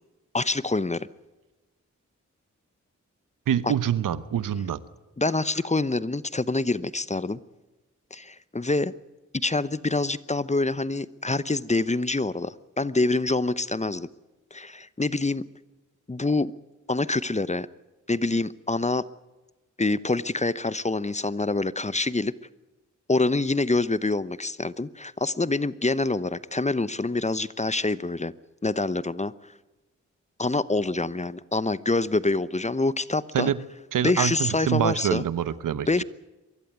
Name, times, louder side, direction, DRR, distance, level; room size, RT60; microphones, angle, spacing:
voice 1, 0.3-1.1 3.6-3.7 5.2-7.4 8.1-8.9 9.3-14.1 14.5-15.4 16.1-16.5 16.9-17.7 18.1-19.1 19.8-22.3 23.1-28.3 28.6-29.3 30.4-33.5 34.0-35.2 35.9-36.0, left 2 dB, 20° left, 18 dB, 0.9 m, -26 dB
voice 2, 3.5-4.8 33.3-33.6 33.9-36.0, right 9 dB, 85° right, 17 dB, 0.9 m, -25 dB
23.0 x 14.0 x 9.5 m, 1.1 s
cardioid pair, 40°, 31 cm